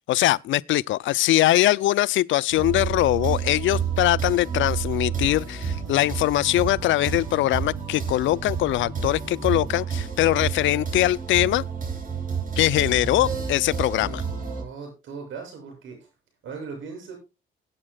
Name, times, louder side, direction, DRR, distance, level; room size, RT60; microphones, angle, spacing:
voice 1, 0.1-11.6 12.6-14.2, left 15 dB, 75° left, 0.4 m, -22 dB
sound 1, 2.5-14.6, right 6 dB, 40° right, 6.1 m, -30 dB
voice 2, 14.5-16.1 16.4-17.2, right 5 dB, 80° right, 7.1 m, -38 dB
21.0 x 8.8 x 2.3 m
cardioid pair, 90°, 20 cm